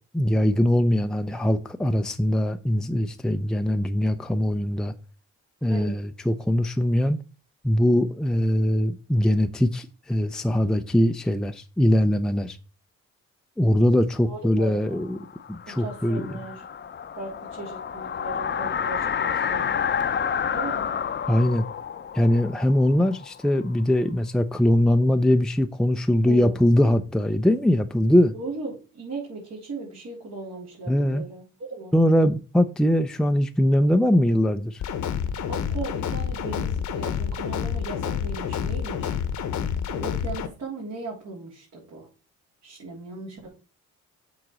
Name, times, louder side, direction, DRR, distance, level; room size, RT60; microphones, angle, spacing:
voice 1, 0.1-4.9 5.6-7.2 7.6-12.6 13.6-16.4 21.3-21.6 22.1-28.3 30.9-31.2 31.9-34.8, left 1 dB, ahead, 0.6 m, -22 dB
voice 2, 14.3-15.0 15.7-16.6 17.1-19.7 20.5-20.9 26.3-26.6 28.3-32.0 35.5-39.2 39.9-42.1 42.6-43.5, right 3 dB, 60° right, 3.7 m, -37 dB
sound 1, 15.0-23.8, left 7 dB, 35° left, 0.8 m, -30 dB
sound 2, 34.8-40.5, left 7 dB, 70° left, 1.2 m, -28 dB
7.7 x 4.0 x 6.1 m
cardioid pair, 90°, 30 cm